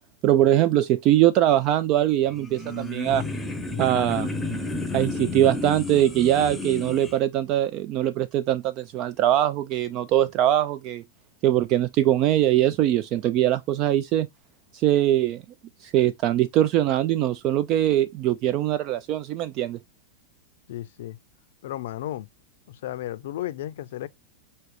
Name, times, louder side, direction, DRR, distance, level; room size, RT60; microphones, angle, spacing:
voice 1, 0.2-3.2 3.8-4.3 4.9-11.0 11.4-14.3 14.7-15.4 15.8-19.8, right 12 dB, 45° right, 0.3 m, -22 dB
sound 1, 2.3-7.1, left 2 dB, 5° left, 0.8 m, -31 dB
voice 2, 20.7-21.2 21.6-22.3 22.7-24.1, left 13 dB, 70° left, 0.4 m, -33 dB
6.0 x 2.8 x 3.2 m
hypercardioid pair, 120°, 0 cm